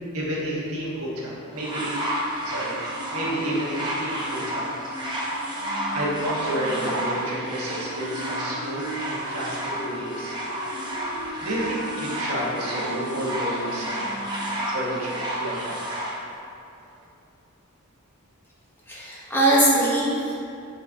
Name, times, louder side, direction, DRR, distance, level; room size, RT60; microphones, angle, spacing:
voice 1, 0.1-2.0 2.4-2.8 3.1-4.7 5.2-5.4 5.9-10.3 11.1-14.2 14.6-15.8, right 1 dB, 75° right, -5 dB, 1.3 m, -30 dB
sound 1, 1.6-16.2 17.0-17.1, right 1 dB, 20° right, 0.8 m, -31 dB
Wind instrument woodwind instrument, 5.6-14.6, equal, 80° left, 1.1 m, -38 dB
voice 2, 18.9-20.3, right 1 dB, 10° left, -7 dB, 0.9 m, -21 dB
6.7 x 4.0 x 3.6 m, 2.5 s
head